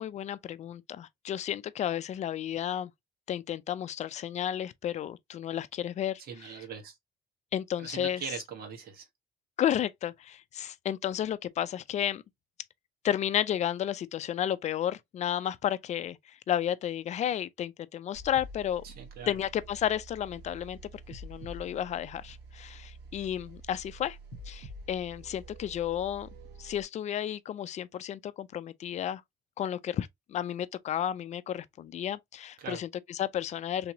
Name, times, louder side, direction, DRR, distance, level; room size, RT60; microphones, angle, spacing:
voice 1, 0.0-2.9 3.3-6.6 7.5-8.2 9.6-12.2 13.0-18.8 19.3-20.8 21.1-24.2 24.5-26.3 26.6-29.2 29.6-33.9, left 10 dB, 45° left, 0.4 m, -32 dB
voice 2, 6.3-6.9 7.8-9.1 18.8-19.3 32.6-32.8, right 6 dB, 65° right, 1.4 m, -41 dB
sound 1, 18.1-26.8, right 2 dB, 90° right, 1.3 m, -48 dB
3.4 x 2.9 x 2.8 m
cardioid pair, 110°, 17 cm